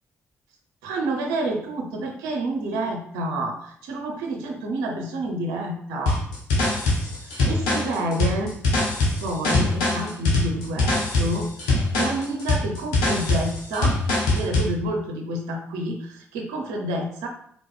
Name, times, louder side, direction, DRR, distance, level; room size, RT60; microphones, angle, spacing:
voice 1, 0.8-6.2 7.2-8.5 9.2-14.0 14.3-17.3, right 1 dB, 80° right, 1 dB, 0.6 m, -29 dB
sound 1, 6.1-14.7, left 2 dB, 85° left, 1.1 m, -23 dB
4.0 x 3.0 x 3.4 m, 0.66 s
hypercardioid pair, 45°, 6 cm